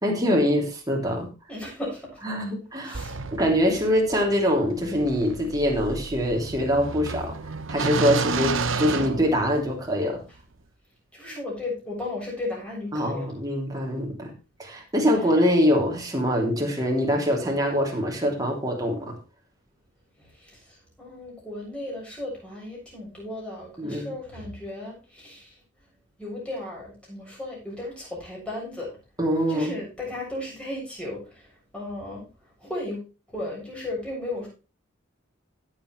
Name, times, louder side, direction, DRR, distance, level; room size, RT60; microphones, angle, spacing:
voice 1, 0.0-1.3 2.2-3.0 3.3-7.3 7.7-10.2 12.9-14.3 14.6-19.2 23.8-24.1 29.2-29.7, equal, 20° right, 0 dB, 3.0 m, -24 dB
voice 2, 1.5-2.1 2.8-3.2 11.1-13.4 20.2-25.6 26.2-28.9 29.5-31.5 31.7-32.2 32.6-33.0 33.3-34.5, left 2 dB, 5° left, -4 dB, 7.2 m, -35 dB
sound 1, 2.9-9.9, right 4 dB, 85° right, 1.0 m, -31 dB
16.5 x 7.3 x 3.2 m, 0.32 s
head